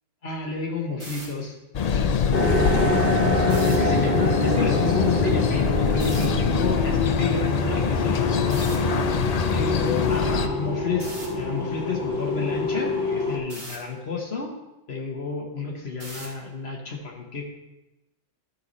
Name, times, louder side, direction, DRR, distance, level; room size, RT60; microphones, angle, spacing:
voice 1, 0.2-1.6 2.2-3.1 3.4-8.8 9.5-14.5 14.9-17.4, left 4 dB, 55° left, 1 dB, 1.5 m, -30 dB
sound 1, 0.9-1.3 3.4-3.8 6.0-6.3 8.5-8.8 11.0-11.3 13.5-13.8 16.0-16.4, right 1 dB, 40° right, 2.3 m, -38 dB
sound 2, 1.7-10.5, left 6 dB, 80° left, 0.3 m, -24 dB
sound 3, 2.3-13.4, left 2 dB, 40° left, 1.4 m, -26 dB
11.5 x 4.7 x 4.1 m, 1.0 s
omnidirectional pair, 1.3 m